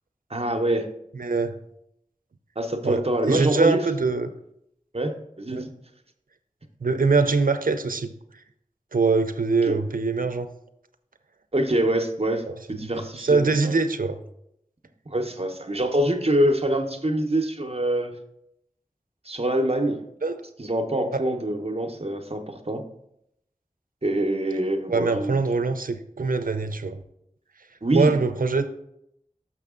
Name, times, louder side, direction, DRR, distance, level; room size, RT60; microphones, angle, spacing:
voice 1, 0.3-0.9 2.6-3.9 4.9-5.7 9.7-9.8 11.5-13.7 15.1-18.1 19.2-20.0 20.6-22.8 24.0-25.4 27.8-28.1, right 1 dB, 45° right, 5 dB, 0.8 m, -25 dB
voice 2, 1.1-1.6 2.8-4.3 5.5-5.6 6.8-8.1 8.9-10.5 12.5-12.6 12.9-14.2 20.2-20.4 21.1-21.2 24.9-27.0 27.9-28.7, right 4 dB, 85° right, 9 dB, 0.5 m, -23 dB
6.5 x 6.1 x 3.6 m, 0.77 s
wide cardioid pair, 40°, 14 cm